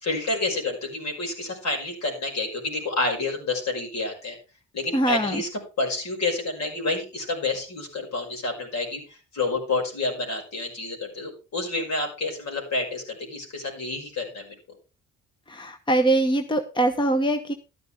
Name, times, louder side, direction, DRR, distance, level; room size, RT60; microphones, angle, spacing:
voice 1, 0.0-4.4 4.7-5.5 5.8-14.5, left 3 dB, 65° left, 1 dB, 5.4 m, -29 dB
voice 2, 4.9-5.4 15.5-17.5, right 1 dB, 15° left, 8 dB, 1.0 m, -23 dB
12.5 x 10.0 x 3.6 m, 0.32 s
cardioid pair, 90°, 30 cm